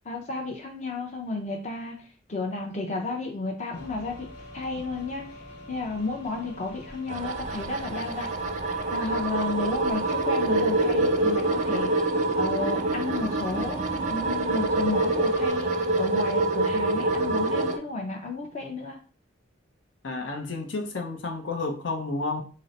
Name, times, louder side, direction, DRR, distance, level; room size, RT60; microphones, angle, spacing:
voice 1, 0.1-2.0 2.3-4.3 4.5-5.4 5.7-8.3 8.9-12.1 12.3-13.8 14.1-19.0, left 3 dB, 40° left, 1 dB, 0.6 m, -32 dB
sound 1, 3.7-15.5, left 1 dB, 60° left, 1.2 m, -44 dB
sound 2, 7.1-17.8, right 2 dB, 40° right, 0.4 m, -26 dB
voice 2, 20.0-22.4, left 3 dB, 75° left, 2 dB, 0.7 m, -31 dB
3.8 x 2.1 x 4.1 m, 0.39 s
head